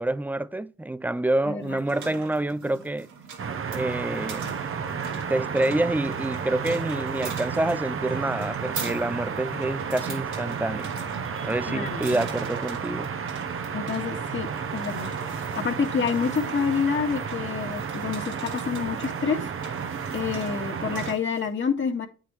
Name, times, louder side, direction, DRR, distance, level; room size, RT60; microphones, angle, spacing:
voice 1, 0.0-3.1 3.7-4.5 5.3-10.9 11.4-13.1, right 1 dB, 5° right, 0.5 m, -27 dB
voice 2, 1.5-1.8 11.7-12.0 13.7-15.1 15.5-19.5 20.1-22.1, left 6 dB, 40° left, 2.0 m, -28 dB
sound 1, 1.6-21.5, right 5 dB, 75° right, 3.0 m, -42 dB
sound 2, 3.4-21.1, right 6 dB, 45° right, 1.0 m, -32 dB
9.0 x 7.5 x 3.1 m
cardioid pair, 90°, 30 cm